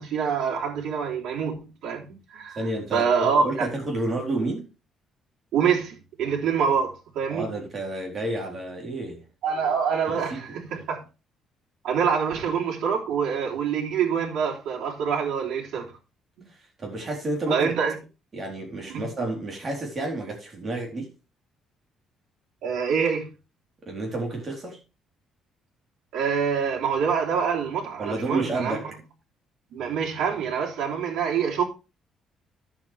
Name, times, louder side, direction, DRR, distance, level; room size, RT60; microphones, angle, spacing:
voice 1, 0.0-2.6 2.9-3.7 5.5-7.5 9.4-11.0 11.8-16.0 16.4-16.5 17.5-18.0 18.9-19.1 22.6-23.3 26.1-28.8 29.7-31.6, right 6 dB, 70° right, 3.4 m, -26 dB
voice 2, 2.6-4.7 7.3-9.2 10.0-10.6 16.8-17.7 18.3-21.2 23.8-24.8 28.0-28.9, right 2 dB, 25° right, 3.7 m, -30 dB
11.5 x 7.6 x 3.4 m
cardioid pair, 160°, 0 cm